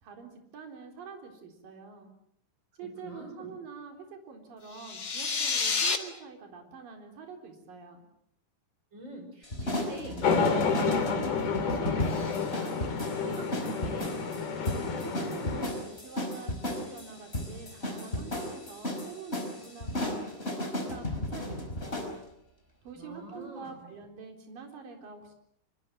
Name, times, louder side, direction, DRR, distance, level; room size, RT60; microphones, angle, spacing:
voice 1, 0.0-2.1 2.8-8.0 14.7-20.3 20.6-22.2 22.8-25.3, right 5 dB, 45° right, 4 dB, 5.3 m, -46 dB
voice 2, 2.8-3.5 8.9-12.7 13.1-14.2 23.0-23.9, right 1 dB, 25° right, 5 dB, 5.9 m, -44 dB
sound 1, 4.7-6.0, left 5 dB, 80° left, 1.0 m, -29 dB
sound 2, 9.4-22.1, left 1 dB, 15° left, 4.4 m, -35 dB
sound 3, 10.2-15.7, left 5 dB, 55° left, 4.6 m, -29 dB
25.0 x 24.0 x 7.6 m, 0.72 s
omnidirectional pair, 5.7 m